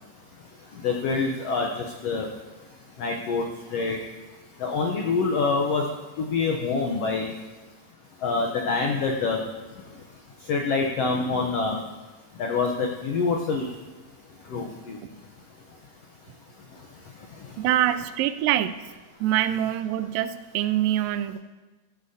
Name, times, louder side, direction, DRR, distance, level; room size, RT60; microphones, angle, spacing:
voice 1, 0.8-1.7 2.0-2.3 3.0-3.5 3.7-4.0 4.6-5.8 6.2-7.3 8.2-9.4 10.5-11.8 12.4-13.7 14.5-15.0, left 4 dB, 75° left, 2 dB, 1.4 m, -25 dB
voice 2, 17.6-18.8 19.2-21.4, right 12 dB, 90° right, 12 dB, 2.3 m, -24 dB
15.0 x 13.0 x 2.7 m, 1.2 s
omnidirectional pair, 3.9 m